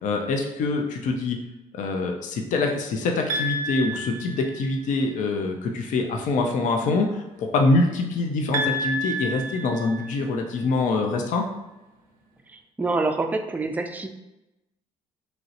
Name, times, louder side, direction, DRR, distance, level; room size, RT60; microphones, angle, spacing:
voice 1, 0.0-1.4 1.7-11.4, left 3 dB, 60° left, 3 dB, 0.5 m, -25 dB
sound 1, 3.3-4.9 8.5-10.6, equal, 80° right, 0.5 m, -30 dB
voice 2, 12.8-14.1, right 3 dB, 10° right, 5 dB, 0.3 m, -26 dB
3.1 x 2.7 x 2.5 m, 0.96 s
supercardioid pair, 80°, 15 cm